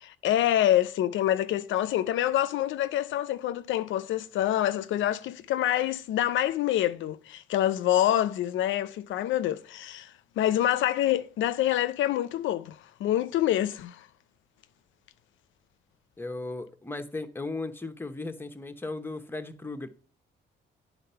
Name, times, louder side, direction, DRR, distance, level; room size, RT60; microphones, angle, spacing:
voice 1, 0.0-14.1, left 12 dB, 75° left, 0.5 m, -26 dB
voice 2, 16.2-19.9, left 2 dB, 10° left, 0.8 m, -36 dB
9.6 x 4.1 x 5.5 m
cardioid pair, 90°, 20 cm